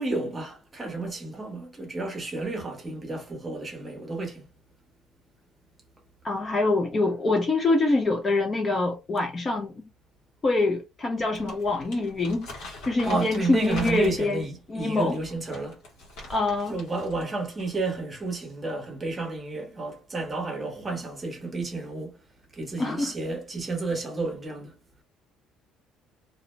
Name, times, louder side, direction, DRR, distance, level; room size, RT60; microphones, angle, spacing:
voice 1, 0.0-4.4 13.0-15.8 16.7-22.2 22.5-24.7, right 3 dB, 15° right, 0.8 m, -31 dB
voice 2, 6.2-9.7 10.4-14.4 14.7-15.2 16.3-16.8 22.8-23.1, left 3 dB, 20° left, 0.3 m, -25 dB
Crumpling crinkling, 11.2-14.4 15.0-17.3 17.6-17.8, left 1 dB, 85° left, 1.2 m, -43 dB
2.5 x 2.0 x 3.0 m
cardioid pair, 175°, 0 cm